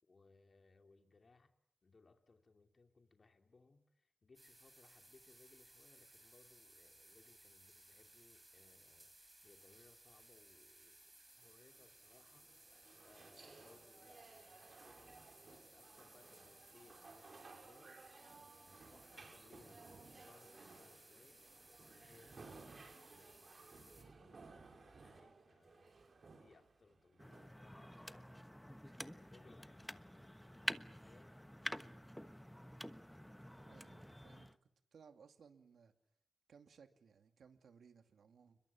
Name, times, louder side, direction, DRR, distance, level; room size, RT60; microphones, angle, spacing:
voice 1, 0.0-1.5 1.8-11.0 11.4-12.8 13.0-18.1 18.9-28.7 29.0-31.3, left 3 dB, 45° left, 5 dB, 2.8 m, -68 dB
sound 1, 4.3-24.0, right 1 dB, 15° right, 6.8 m, -63 dB
sound 2, 11.4-28.4, right 4 dB, 50° right, 5.9 m, -60 dB
sound 3, 27.2-34.5, equal, 5° left, 1.2 m, -48 dB
voice 2, 33.6-34.5 34.9-35.9 36.5-38.6, right 6 dB, 85° right, 6 dB, 2.4 m, -63 dB
30.0 x 22.0 x 7.2 m, 0.75 s
wide cardioid pair, 95°, 0 cm